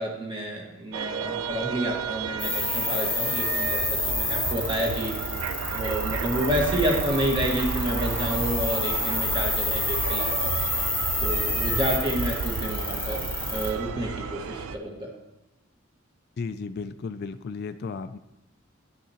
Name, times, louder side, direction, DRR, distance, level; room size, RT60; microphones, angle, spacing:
voice 1, 0.0-5.1 5.7-10.5 11.2-13.2 13.5-15.1, right 1 dB, 25° right, -1 dB, 1.6 m, -29 dB
sound 1, 0.9-14.8, right 5 dB, 80° right, 0.4 m, -32 dB
sound 2, 2.4-13.7, left 3 dB, 5° left, 0.9 m, -29 dB
voice 2, 16.4-18.2, left 4 dB, 50° left, 11 dB, 0.3 m, -34 dB
11.0 x 6.3 x 2.9 m, 0.99 s
head